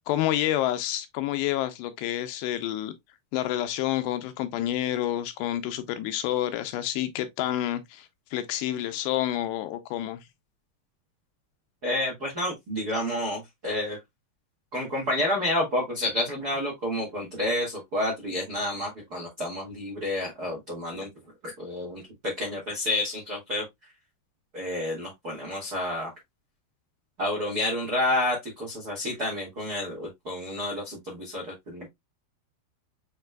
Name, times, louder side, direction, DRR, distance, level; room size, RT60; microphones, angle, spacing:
voice 1, 0.0-2.9 3.3-10.2, left 13 dB, 85° left, 2.7 m, -29 dB
voice 2, 11.8-14.0 14.7-21.1 21.6-23.6 24.5-26.1 27.2-31.9, left 1 dB, 70° right, 0.9 m, -29 dB
7.4 x 3.2 x 2.2 m
omnidirectional pair, 5.0 m